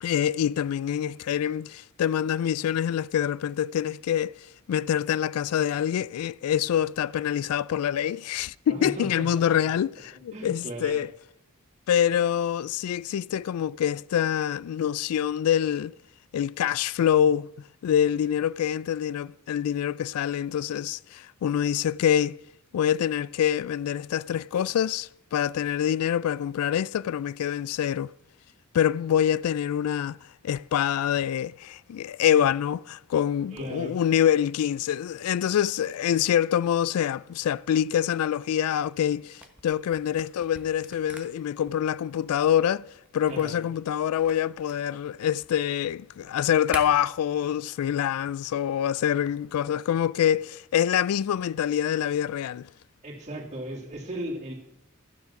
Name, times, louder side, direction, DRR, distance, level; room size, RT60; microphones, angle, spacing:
voice 1, 0.0-4.4 4.7-11.1 11.9-15.9 16.3-17.5 17.8-22.4 22.7-28.1 28.7-30.2 30.4-42.9 43.1-52.7, left 9 dB, 90° left, 0.3 m, -25 dB
voice 2, 8.7-9.4 10.3-11.0 33.5-34.0 43.3-43.7 53.0-54.5, right 1 dB, 35° right, 2.8 m, -36 dB
Camera, 39.3-46.8, right 2 dB, 5° right, 1.1 m, -46 dB
12.0 x 7.8 x 5.8 m
head